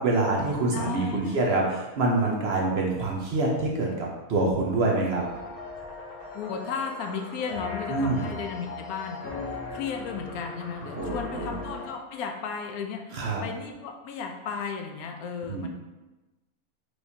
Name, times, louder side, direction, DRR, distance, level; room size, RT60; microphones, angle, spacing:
voice 1, 0.0-5.2 7.9-8.3 11.0-11.6 13.1-13.4 15.5-15.7, right 2 dB, 60° right, -1 dB, 0.7 m, -26 dB
voice 2, 0.7-1.5 6.3-15.7, left 6 dB, 85° left, 3 dB, 1.0 m, -35 dB
sound 1, 5.1-11.9, left 3 dB, 45° left, 1.1 m, -38 dB
4.6 x 3.2 x 2.7 m, 1.1 s
omnidirectional pair, 1.5 m